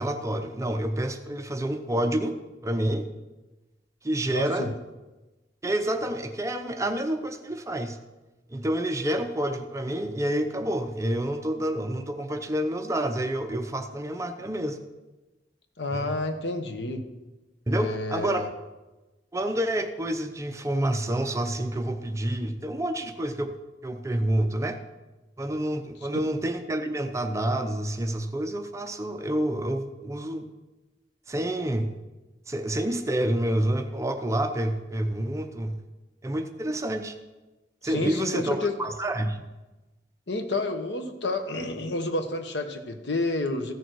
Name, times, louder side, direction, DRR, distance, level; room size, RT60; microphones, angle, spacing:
voice 1, 0.0-2.4 2.6-3.1 4.0-4.7 5.6-8.0 8.5-14.8 15.9-16.1 17.7-18.5 19.3-23.6 23.8-24.8 25.4-30.5 31.3-31.9 32.5-35.8 36.2-37.2 37.8-39.5, right 1 dB, 15° right, 7 dB, 0.7 m, -28 dB
voice 2, 4.3-4.7 15.8-17.0 17.7-18.4 37.8-38.7 40.3-43.7, left 2 dB, 75° left, 7 dB, 1.1 m, -30 dB
14.5 x 6.7 x 4.6 m, 1.1 s
head